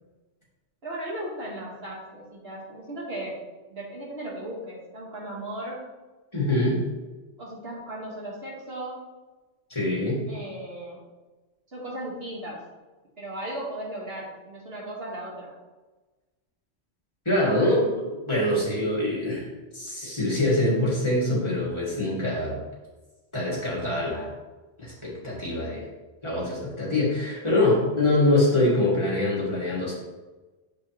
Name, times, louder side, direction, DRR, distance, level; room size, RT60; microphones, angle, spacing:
voice 1, 0.8-3.4 3.7-5.8 7.4-9.0 10.3-11.0 11.7-12.6 13.2-15.5, right 1 dB, 55° right, -4 dB, 1.6 m, -36 dB
voice 2, 6.3-6.8 9.7-10.3 17.3-19.5 19.7-22.6 23.3-24.3 24.8-25.9 26.2-29.9, left 1 dB, 25° left, -7 dB, 1.9 m, -24 dB
7.2 x 5.0 x 2.9 m, 1.2 s
omnidirectional pair, 1.2 m